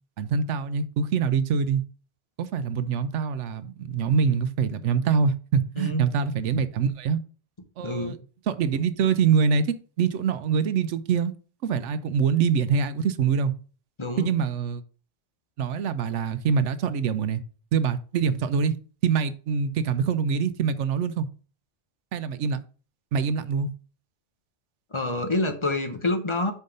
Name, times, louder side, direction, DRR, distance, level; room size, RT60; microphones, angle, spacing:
voice 1, 0.2-1.8 2.4-7.2 7.8-8.2 8.5-11.3 11.6-13.5 14.2-14.8 15.6-17.4 17.7-18.8 19.0-21.3 22.1-22.6 23.1-23.7, right 6 dB, 75° right, 1.0 m, -24 dB
voice 2, 5.8-6.1 7.8-8.2 14.0-14.3 24.9-26.5, left 2 dB, 30° left, 0.8 m, -27 dB
5.4 x 4.6 x 5.2 m
omnidirectional pair, 1.2 m